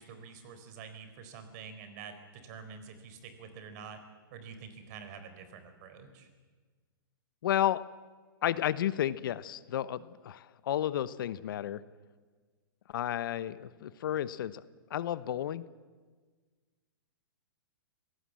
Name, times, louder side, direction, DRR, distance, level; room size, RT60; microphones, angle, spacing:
voice 1, 0.0-4.0 4.3-6.3, right 6 dB, 45° right, 9 dB, 4.1 m, -47 dB
voice 2, 7.4-7.8 8.4-11.8 12.9-14.6 14.9-15.6, left 11 dB, 65° left, 16 dB, 1.0 m, -32 dB
25.0 x 18.0 x 7.6 m, 1.4 s
hypercardioid pair, 130°, 12 cm